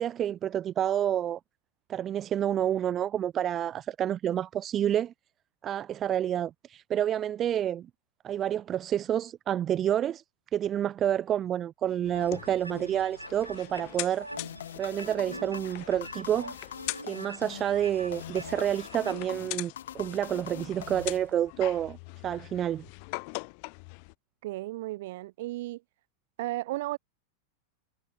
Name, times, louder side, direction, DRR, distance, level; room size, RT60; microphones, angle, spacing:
voice 1, 0.0-1.4 1.9-5.1 5.6-7.9 8.2-10.2 10.5-14.3 14.8-16.6 17.0-22.0 22.2-22.9, right 10 dB, 30° right, 0.3 m, -29 dB
sound 1, 12.0-24.1, left 39 dB, 45° left, 0.8 m, -42 dB
sound 2, 12.1-19.3, right 1 dB, 85° right, 0.8 m, -44 dB
sound 3, 14.4-21.7, left 10 dB, 60° left, 3.2 m, -44 dB
voice 2, 24.4-25.8 26.4-27.0, right 17 dB, 55° right, 1.8 m, -34 dB
figure-of-eight pair, 90°, 0 cm